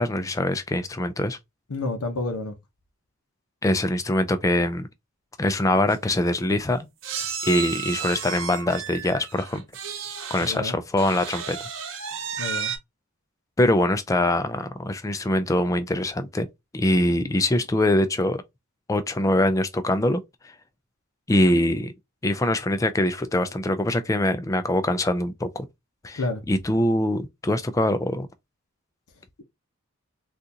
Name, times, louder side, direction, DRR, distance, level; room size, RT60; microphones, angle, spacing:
voice 1, 0.0-1.4 3.6-4.9 5.4-6.9 7.4-9.6 10.3-11.6 13.6-16.5 16.7-18.4 18.9-20.2 21.3-21.9 22.2-25.7 26.0-26.2 26.5-28.3, left 1 dB, 15° left, 0.3 m, -23 dB
voice 2, 1.7-2.6 10.4-10.8 12.4-12.7 26.2-26.4, left 2 dB, 85° left, 0.8 m, -29 dB
sound 1, 5.6-5.7 5.9-6.1 7.0-10.6 11.0-12.8, right 7 dB, 55° right, 0.8 m, -33 dB
3.7 x 2.4 x 2.7 m
head